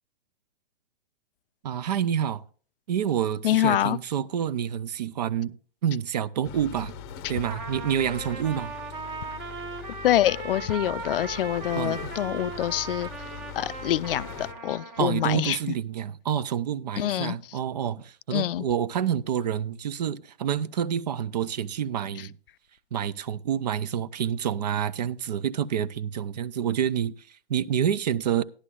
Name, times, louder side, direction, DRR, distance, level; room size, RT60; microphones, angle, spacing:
voice 1, 1.6-2.4 2.9-5.6 5.8-7.0 7.3-8.7 11.7-12.1 15.0-22.3 22.9-28.4, right 9 dB, 40° right, 0.4 m, -28 dB
voice 2, 3.4-4.0 10.0-13.1 13.6-15.7 17.0-17.4 18.3-18.7, left 12 dB, 60° left, 0.5 m, -25 dB
sound 1, 6.4-14.5, left 9 dB, 25° left, 0.7 m, -42 dB
Trumpet, 7.5-15.3, right 4 dB, 20° right, 0.9 m, -38 dB
14.5 x 11.0 x 2.3 m
hypercardioid pair, 160°, 31 cm